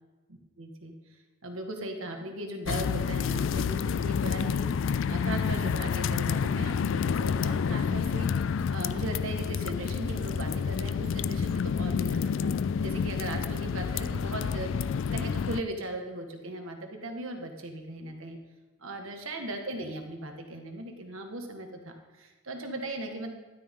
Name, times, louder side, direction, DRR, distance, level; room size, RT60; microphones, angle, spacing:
voice 1, 0.3-0.9 1.4-4.7 5.1-8.4 8.7-12.5 12.8-18.4 18.8-23.3, right 1 dB, 70° right, 4 dB, 1.6 m, -38 dB
sound 1, 2.7-15.6, left 6 dB, 60° left, 0.3 m, -29 dB
13.0 x 12.0 x 3.7 m, 1.2 s
head